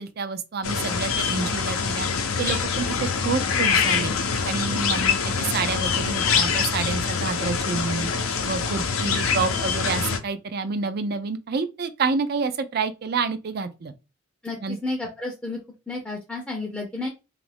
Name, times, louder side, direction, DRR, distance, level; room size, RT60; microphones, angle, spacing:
voice 1, 0.0-2.1 2.4-2.9 3.2-4.1 4.5-13.9 14.6-14.8, right 4 dB, 45° right, 0.4 m, -28 dB
sound 1, 0.6-10.2, left 5 dB, 80° left, 0.6 m, -25 dB
voice 2, 14.4-15.6 15.9-17.1, left 2 dB, 5° left, 0.5 m, -31 dB
3.0 x 2.5 x 3.3 m
head